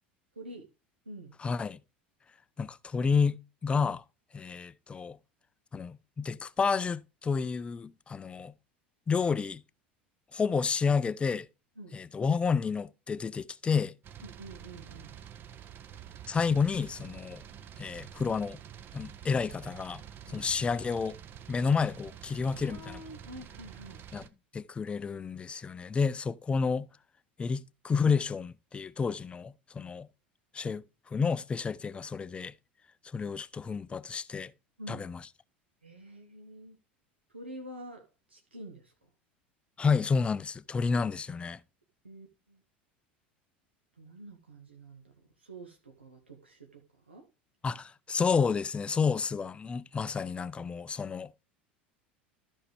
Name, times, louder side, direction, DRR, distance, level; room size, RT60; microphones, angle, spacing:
voice 1, 0.3-0.7 1.0-1.4 11.8-12.0 14.2-15.1 20.2-20.5 22.5-24.0 34.8-35.1 35.8-36.8 37.3-38.9 42.0-42.6 44.0-45.1 45.4-47.3, right 1 dB, 85° right, 1.1 m, -47 dB
voice 2, 1.4-1.8 2.6-4.0 4.3-5.2 5.7-8.5 9.1-9.6 10.3-11.5 11.9-13.9 16.3-17.4 17.8-18.6 18.9-20.0 20.3-21.2 21.5-23.0 24.1-24.3 24.5-26.9 27.4-30.1 30.5-30.8 31.1-32.5 33.1-34.5 34.9-35.2 39.8-41.6 47.6-51.3, left 5 dB, 20° left, 0.5 m, -30 dB
sound 1, 14.0-24.3, right 9 dB, 35° right, 0.8 m, -48 dB
13.5 x 5.5 x 3.2 m
figure-of-eight pair, 75°, 6 cm